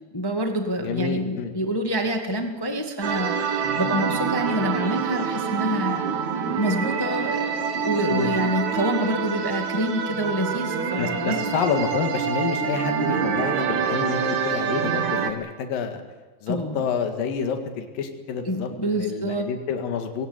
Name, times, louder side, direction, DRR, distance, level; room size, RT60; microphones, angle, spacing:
voice 1, 0.1-6.2 6.5-11.4 16.5-16.8 18.4-19.5, equal, 35° left, 4 dB, 0.3 m, -27 dB
voice 2, 0.8-1.6 8.1-8.3 11.0-16.0 16.4-20.3, left 6 dB, 75° left, 5 dB, 3.5 m, -28 dB
sound 1, 3.0-15.3, right 6 dB, 60° right, 2.7 m, -26 dB
22.0 x 18.0 x 9.6 m, 1.3 s
omnidirectional pair, 4.1 m